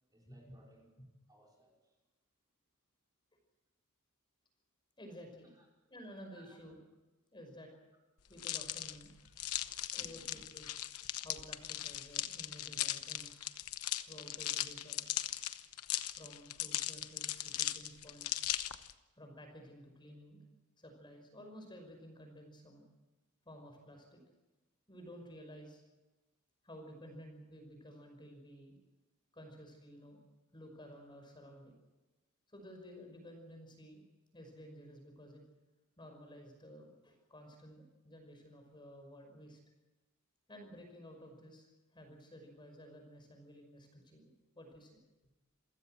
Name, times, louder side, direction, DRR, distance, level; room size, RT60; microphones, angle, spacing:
voice 1, 0.1-0.9 1.3-2.0 5.5-5.7 6.3-6.6 9.2-9.3 10.0-10.2, right 1 dB, 20° right, -2 dB, 4.9 m, -63 dB
voice 2, 5.0-5.5 5.9-6.8 7.3-7.7 8.3-9.1 9.9-10.7 11.2-13.4 14.0-15.3 16.2-18.4 19.1-20.4 20.8-22.9 23.5-24.2 24.9-25.8 26.6-28.8 29.3-30.2 30.5-31.7 32.5-34.0 34.3-35.4 36.0-39.6 40.5-41.7 41.9-45.0, equal, 20° left, 4 dB, 5.5 m, -53 dB
sound 1, 8.4-18.9, left 13 dB, 80° left, 1.0 m, -38 dB
28.0 x 16.0 x 7.8 m, 1.1 s
head